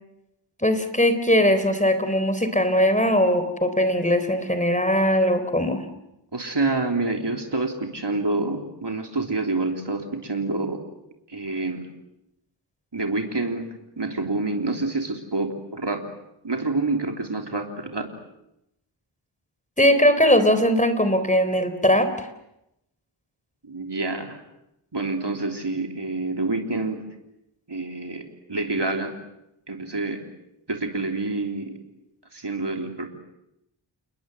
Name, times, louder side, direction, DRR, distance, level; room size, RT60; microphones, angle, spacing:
voice 1, 0.6-5.8 19.8-22.3, equal, 15° left, 10 dB, 3.9 m, -20 dB
voice 2, 6.3-10.8 11.3-11.8 12.9-13.7 14.0-16.0 16.4-18.1 23.6-24.4 24.9-27.0 27.7-29.1 29.7-30.2 30.7-31.8 32.3-33.1, right 3 dB, 60° right, 3 dB, 3.4 m, -27 dB
29.5 x 21.0 x 7.9 m, 0.86 s
wide cardioid pair, 40°, 46 cm